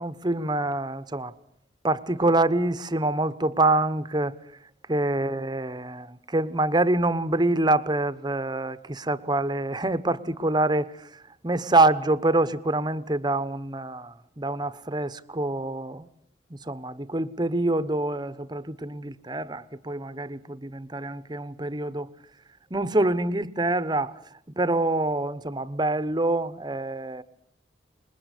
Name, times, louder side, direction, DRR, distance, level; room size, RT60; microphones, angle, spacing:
voice 1, 0.0-1.3 1.8-4.3 4.9-16.1 16.5-22.1 22.7-24.2 24.6-27.2, right 2 dB, 25° right, 1.0 m, -26 dB
27.5 x 21.0 x 8.4 m
head